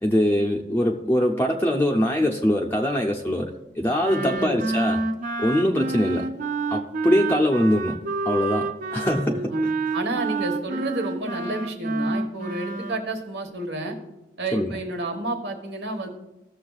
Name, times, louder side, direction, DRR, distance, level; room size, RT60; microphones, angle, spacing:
voice 1, 0.0-5.0 5.4-6.3 6.7-8.0 8.3-9.9 14.5-14.7, equal, 10° left, 0 dB, 0.5 m, -23 dB
Wind instrument woodwind instrument, 4.0-13.0, right 3 dB, 45° right, 0.5 m, -28 dB
voice 2, 4.2-4.6 9.5-14.0 14.4-16.1, right 2 dB, 75° right, 4 dB, 1.3 m, -30 dB
15.0 x 6.9 x 2.3 m, 0.98 s
head